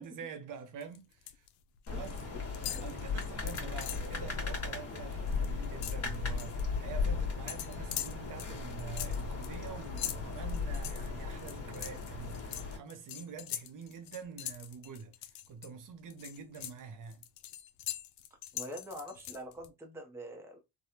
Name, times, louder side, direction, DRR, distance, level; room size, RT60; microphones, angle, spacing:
voice 1, 0.0-1.5 1.9-2.1 2.7-17.2, right 6 dB, 45° right, 0.7 m, -46 dB
sound 1, 0.8-1.5 1.8-2.2 2.5-4.1 4.5-4.7 5.0-6.6 7.5-15.7 16.1-19.7, left 12 dB, 85° left, 0.6 m, -42 dB
sound 2, 1.9-12.8, left 4 dB, 30° left, 1.3 m, -37 dB
voice 2, 1.9-2.9 18.5-20.6, equal, 5° right, 0.7 m, -45 dB
3.3 x 2.3 x 2.8 m
supercardioid pair, 90°, 46 cm